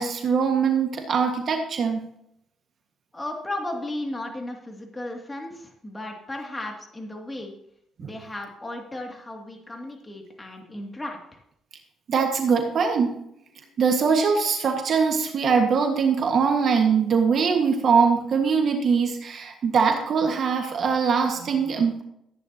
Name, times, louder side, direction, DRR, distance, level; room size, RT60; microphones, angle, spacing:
voice 1, 0.0-2.0 8.0-8.1 12.1-13.2 13.8-22.0, right 5 dB, 60° right, 3 dB, 1.7 m, -22 dB
voice 2, 3.1-7.5 8.0-11.4, left 1 dB, 15° left, 1 dB, 2.5 m, -35 dB
14.0 x 10.0 x 2.9 m, 0.76 s
cardioid pair, 90°, 0 cm